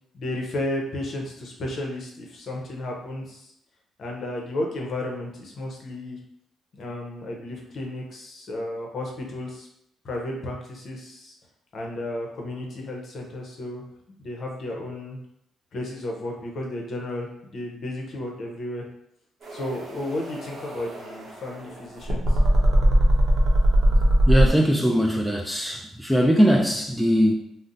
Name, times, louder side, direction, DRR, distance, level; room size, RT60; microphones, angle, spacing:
voice 1, 0.1-3.5 4.0-6.2 6.8-9.7 10.0-11.3 11.7-13.8 14.2-15.2 15.7-18.8 19.5-22.2, left 1 dB, 55° left, 0.7 m, -33 dB
sound 1, 19.4-24.5, equal, 55° right, 0.7 m, -20 dB
voice 2, 24.3-27.3, equal, ahead, 0.4 m, -20 dB
2.5 x 2.1 x 3.8 m
cardioid pair, 90°, 0 cm